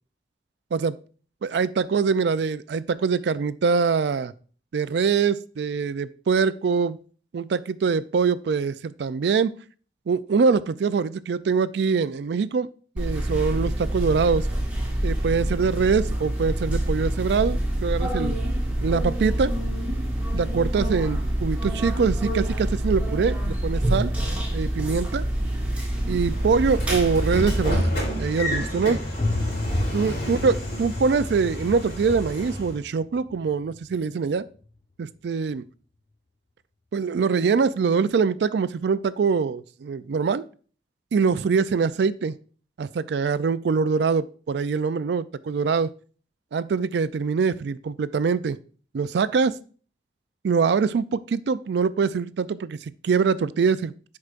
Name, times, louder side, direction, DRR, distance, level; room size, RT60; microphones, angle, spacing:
voice 1, 1.4-4.3 4.7-7.0 7.3-9.5 10.1-12.7 13.0-14.5 15.0-18.4 18.8-19.5 20.3-24.1 24.5-25.2 26.1-27.9 28.2-29.0 29.9-34.4 35.0-35.6 36.9-40.4 41.1-42.3 42.8-45.9 46.5-48.6 48.9-49.6 50.4-54.2, right 5 dB, 70° right, 15 dB, 0.4 m, -23 dB
sound 1, 13.0-27.8, right 1 dB, 10° right, 2.0 m, -26 dB
Train / Sliding door, 26.2-32.8, equal, 50° left, 3.5 m, -30 dB
sound 2, 29.2-34.8, left 2 dB, 30° left, 0.5 m, -32 dB
11.0 x 4.7 x 2.5 m, 0.40 s
head